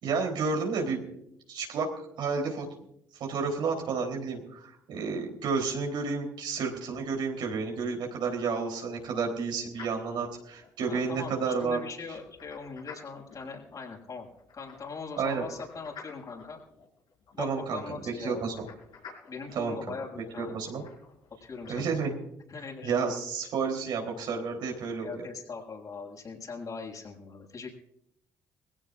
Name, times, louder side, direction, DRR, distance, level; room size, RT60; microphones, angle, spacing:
voice 1, 0.0-1.0 1.5-1.9 2.2-2.6 3.2-11.8 15.2-15.4 17.4-18.7 19.5-19.8 20.4-20.8 21.7-22.1 22.8-25.1, right 5 dB, 65° right, 2 dB, 3.8 m, -31 dB
sound 1, 9.7-22.1, left 6 dB, 65° left, 4.9 m, -53 dB
voice 2, 10.9-14.3 14.5-16.6 17.3-18.4 19.3-20.5 21.4-21.9 22.5-22.9 25.0-27.7, left 4 dB, 45° left, -1 dB, 6.6 m, -40 dB
23.0 x 16.5 x 2.6 m, 0.74 s
hypercardioid pair, 50°, 9 cm